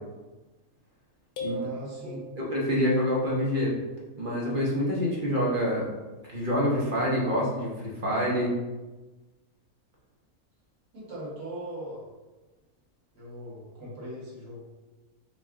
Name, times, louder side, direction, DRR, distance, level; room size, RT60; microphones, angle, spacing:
sound 1, 1.4-2.9, right 1 dB, 90° left, 1.2 m, -38 dB
voice 1, 1.4-2.2 10.9-12.0 13.1-14.6, equal, 75° right, -6 dB, 2.0 m, -40 dB
voice 2, 2.0-3.7 4.2-5.9 6.3-8.5, equal, 45° right, -4 dB, 0.8 m, -27 dB
5.1 x 2.3 x 3.6 m, 1.2 s
omnidirectional pair, 1.6 m